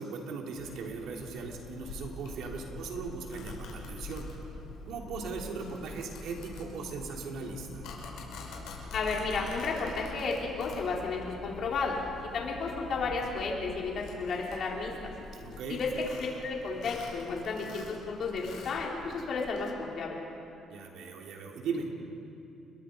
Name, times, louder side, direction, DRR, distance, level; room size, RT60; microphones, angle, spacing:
voice 1, 0.0-7.9 15.3-15.8 20.7-21.9, right 4 dB, 75° right, 1 dB, 3.2 m, -39 dB
Domestic sounds home sounds, 0.6-19.7, left 3 dB, 90° left, 5.7 m, -45 dB
voice 2, 8.9-12.0 12.3-14.9 15.7-15.9 16.4-20.2, left 4 dB, 50° left, -2 dB, 4.5 m, -33 dB
30.0 x 22.0 x 5.1 m, 2.7 s
cardioid pair, 135°, 0 cm